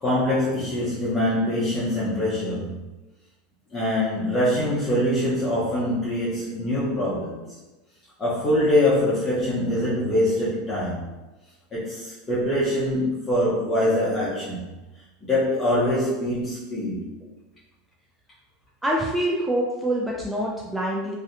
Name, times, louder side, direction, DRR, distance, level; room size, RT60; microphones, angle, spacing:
voice 1, 0.0-2.9 3.7-7.6 8.2-11.1 11.7-14.7 15.2-17.1, left 1 dB, 25° left, -9 dB, 0.7 m, -24 dB
voice 2, 18.8-21.2, right 1 dB, 10° right, -3 dB, 0.3 m, -25 dB
2.6 x 2.1 x 2.4 m, 1.1 s
supercardioid pair, 110°, 0 cm